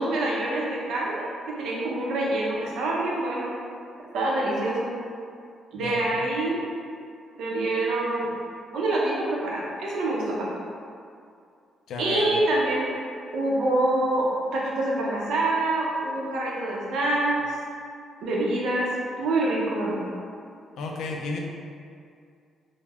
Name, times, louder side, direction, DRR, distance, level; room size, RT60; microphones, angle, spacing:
voice 1, 0.0-3.5 4.1-4.9 5.7-6.6 7.4-8.3 8.7-10.5 12.0-12.9 13.3-17.6 18.2-18.9 19.2-20.1, right 2 dB, 80° right, -4 dB, 0.6 m, -26 dB
voice 2, 11.9-12.3 20.8-21.4, left 3 dB, 80° left, 0 dB, 0.3 m, -32 dB
2.3 x 2.0 x 3.4 m, 2.4 s
cardioid pair, 90°, 0 cm